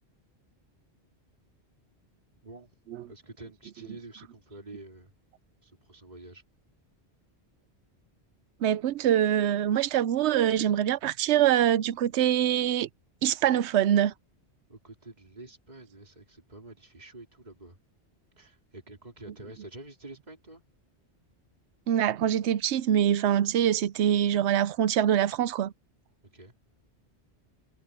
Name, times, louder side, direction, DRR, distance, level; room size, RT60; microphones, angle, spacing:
voice 1, 3.1-5.1 5.6-6.4 14.7-17.8 18.4-20.6 26.3-26.6, right 2 dB, 40° right, 3.7 m, -48 dB
voice 2, 8.6-12.9 13.2-14.1 21.9-25.7, right 10 dB, 85° right, 0.9 m, -24 dB
omnidirectional pair, 1.1 m